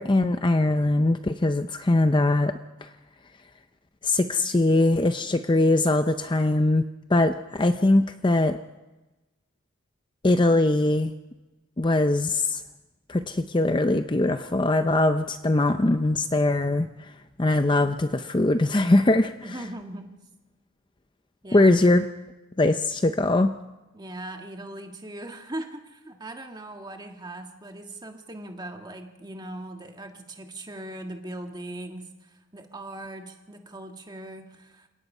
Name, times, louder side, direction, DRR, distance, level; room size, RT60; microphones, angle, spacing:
voice 1, 0.0-2.5 2.8-2.9 4.0-6.8 7.1-8.6 10.2-11.1 11.8-12.6 13.1-17.1 17.4-19.3 21.5-22.0 22.6-23.5, left 2 dB, 20° left, 9 dB, 0.6 m, -21 dB
voice 2, 19.4-20.1 21.4-21.8 23.9-34.9, right 1 dB, 20° right, 4 dB, 1.7 m, -39 dB
29.0 x 17.5 x 5.5 m, 1.1 s
head